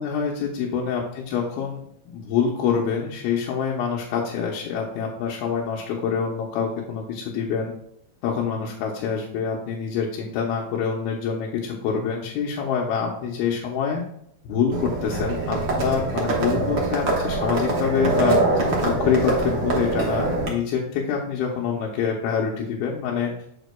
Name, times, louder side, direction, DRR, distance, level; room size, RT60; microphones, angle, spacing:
voice 1, 0.0-1.8 2.1-7.7 8.2-14.0 14.4-18.4 18.8-23.3, left 6 dB, 85° left, -3 dB, 2.7 m, -26 dB
Livestock farm animals working animals, 14.7-20.5, right 2 dB, 90° right, 1.0 m, -24 dB
8.1 x 6.8 x 2.2 m, 0.70 s
omnidirectional pair, 4.3 m